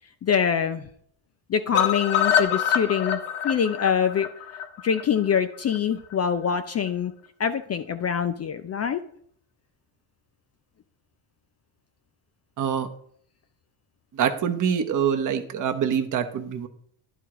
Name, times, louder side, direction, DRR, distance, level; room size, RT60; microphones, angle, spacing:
voice 1, 0.2-0.9 1.5-4.3 4.8-7.1 7.4-9.0, left 7 dB, 35° left, 9 dB, 0.4 m, -24 dB
sound 1, 1.7-5.8 6.1-6.2 6.5-6.6 6.9-7.0, left 9 dB, 80° left, 1.1 m, -25 dB
voice 2, 12.6-12.9 14.1-16.7, right 8 dB, 40° right, 6 dB, 0.8 m, -25 dB
11.0 x 3.7 x 4.6 m, 0.64 s
cardioid pair, 105°, 50 cm